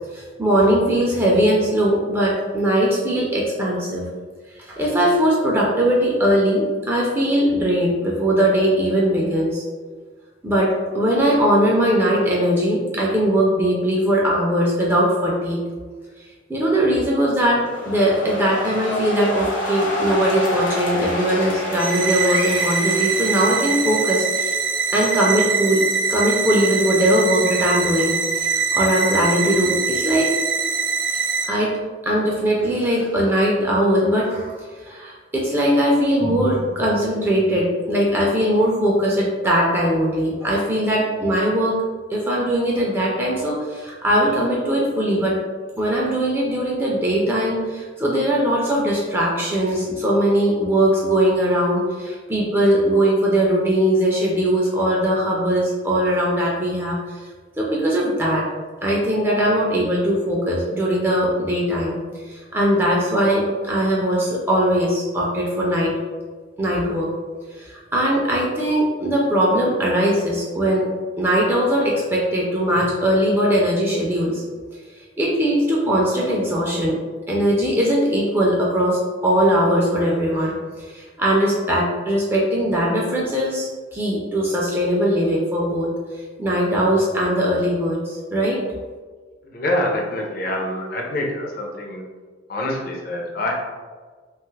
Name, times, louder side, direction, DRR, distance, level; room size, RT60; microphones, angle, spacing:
voice 1, 0.1-4.0 4.6-9.6 10.4-15.6 16.5-24.6 24.9-25.8 26.1-30.3 31.5-31.8 32.0-41.8 42.1-45.4 45.8-57.2 57.6-58.5 58.8-65.9 66.6-67.1 67.6-70.9 71.2-74.4 75.0-77.0 77.3-85.9 86.4-88.6, equal, 10° right, -4 dB, 0.3 m, -20 dB
sound 1, 17.4-24.3, left 1 dB, 75° left, 0.9 m, -28 dB
sound 2, 21.8-31.4, right 5 dB, 65° right, 0.6 m, -23 dB
voice 2, 89.4-92.0 92.5-93.5, left 1 dB, 45° left, 0 dB, 0.5 m, -26 dB
2.8 x 2.3 x 3.1 m, 1.5 s
head